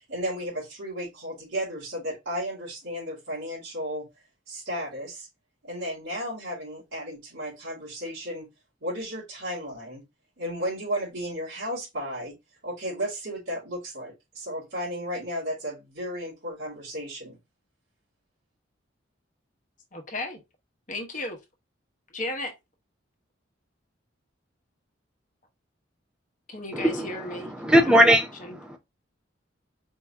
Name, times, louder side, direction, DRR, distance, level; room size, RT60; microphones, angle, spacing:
voice 1, 0.0-4.1 4.5-5.3 5.6-8.5 8.8-10.0 10.4-12.3 12.6-17.4, equal, 75° right, 2.5 m, -34 dB
voice 2, 19.9-20.4 20.9-21.4 22.1-22.5 26.5-27.5 27.8-28.1 28.4-28.5, left 2 dB, 40° left, 1.0 m, -34 dB
voice 3, 26.7-28.8, equal, 5° right, 0.6 m, -21 dB
4.5 x 2.8 x 3.6 m
head